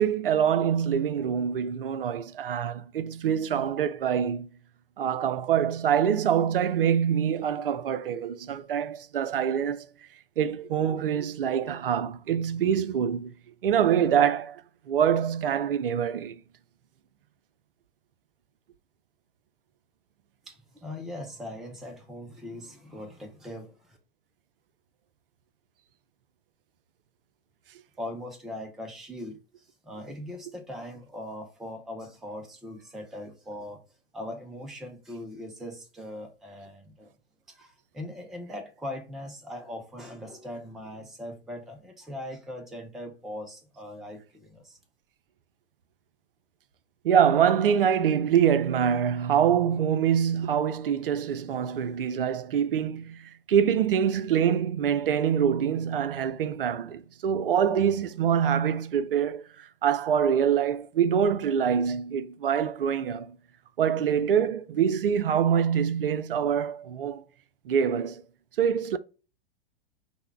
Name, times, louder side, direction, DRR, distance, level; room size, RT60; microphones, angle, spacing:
voice 1, 0.0-4.5 5.0-9.9 10.4-13.3 13.6-14.6 14.9-16.4 47.0-63.4 63.8-67.2 67.7-68.2 68.6-69.0, right 8 dB, 65° right, 0.5 m, -25 dB
voice 2, 20.5-24.0 28.0-29.4 29.8-33.8 34.1-37.1 37.5-44.8, left 1 dB, ahead, 0.3 m, -40 dB
5.6 x 2.1 x 4.5 m
figure-of-eight pair, 95°, 31 cm